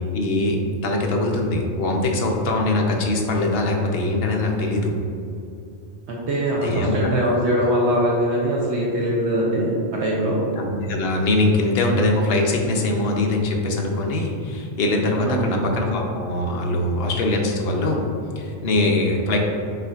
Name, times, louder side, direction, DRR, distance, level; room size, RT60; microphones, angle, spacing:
voice 1, 0.1-5.0 6.6-7.0 10.6-18.0 18.4-19.4, left 2 dB, 60° left, 1 dB, 0.8 m, -22 dB
voice 2, 6.1-10.4 15.2-15.7, equal, 65° right, -3 dB, 0.9 m, -22 dB
5.7 x 3.7 x 2.4 m, 2.5 s
omnidirectional pair, 1.3 m